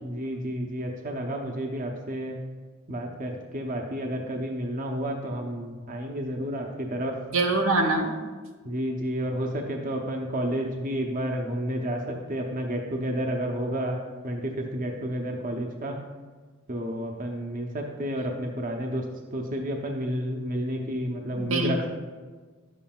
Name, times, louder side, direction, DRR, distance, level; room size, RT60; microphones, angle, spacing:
voice 1, 0.0-2.4 2.9-7.2 8.6-12.0 12.3-14.0 14.2-16.0 16.7-19.0 19.3-21.9, equal, 40° right, 1 dB, 0.7 m, -30 dB
voice 2, 7.3-8.1 21.3-21.9, right 2 dB, 75° right, 3 dB, 0.9 m, -24 dB
11.0 x 7.3 x 2.3 m, 1.4 s
head